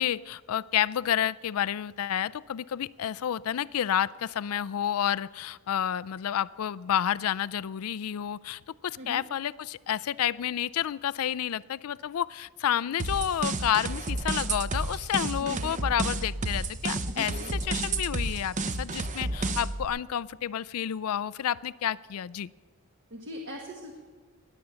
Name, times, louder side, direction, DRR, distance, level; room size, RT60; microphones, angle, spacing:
voice 1, 0.0-17.3 17.6-22.5, left 10 dB, 75° left, 18 dB, 0.4 m, -30 dB
sound 1, 13.0-19.8, right 2 dB, 35° right, 0.7 m, -31 dB
voice 2, 15.4-15.8 17.1-17.5 23.1-24.0, equal, 55° right, 1 dB, 1.5 m, -40 dB
20.0 x 9.1 x 6.9 m, 1.5 s
head